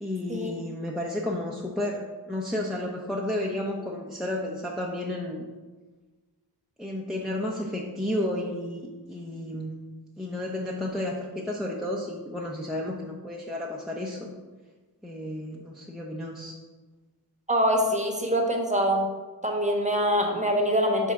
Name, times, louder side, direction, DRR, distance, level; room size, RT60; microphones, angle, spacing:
voice 1, 0.0-5.4 6.8-9.7 10.2-14.3 15.0-16.6, left 1 dB, ahead, -3 dB, 0.8 m, -32 dB
voice 2, 17.5-19.1 19.4-21.1, equal, 15° right, 2 dB, 1.2 m, -24 dB
5.9 x 3.6 x 6.0 m, 1.3 s
wide cardioid pair, 55°, 40 cm